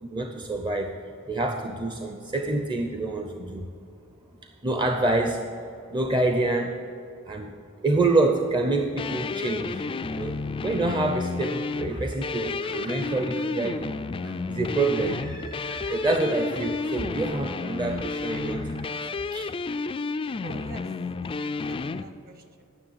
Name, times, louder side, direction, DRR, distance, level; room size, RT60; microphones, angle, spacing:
voice 1, 0.0-0.9 1.3-3.7 4.6-5.4 5.9-6.7 7.3-7.6 7.8-9.9 10.1-14.0 14.2-19.5, right 2 dB, 20° right, 4 dB, 0.6 m, -27 dB
sound 1, 9.0-22.0, left 4 dB, 25° left, 0.3 m, -31 dB
voice 2, 20.4-20.9 21.2-22.6, right 3 dB, 45° right, 7 dB, 1.1 m, -46 dB
9.9 x 6.4 x 7.9 m, 2.5 s
head